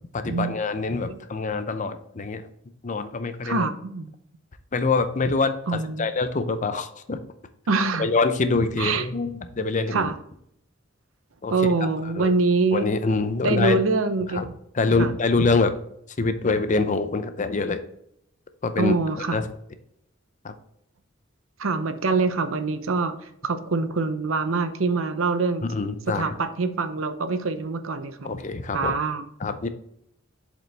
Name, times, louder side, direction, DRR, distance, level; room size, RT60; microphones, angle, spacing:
voice 1, 0.1-2.4 2.8-3.7 4.7-7.2 8.0-10.1 11.4-11.5 12.2-12.3 12.7-13.8 14.3-14.5 14.7-15.7 16.2-17.8 18.6-18.9 19.3-19.5 20.4-20.5 25.7-26.3 28.2-28.9 29.4-29.7, left 3 dB, 40° left, 10 dB, 0.6 m, -25 dB
voice 2, 3.4-4.1 5.7-6.1 7.7-8.1 8.8-9.1 9.9-10.2 11.5-12.8 13.4-14.4 15.0-15.1 18.8-19.4 21.6-23.2 23.4-25.6 26.1-28.3 28.7-29.2, right 3 dB, 80° right, 10 dB, 0.7 m, -24 dB
7.5 x 5.1 x 3.3 m, 0.73 s
head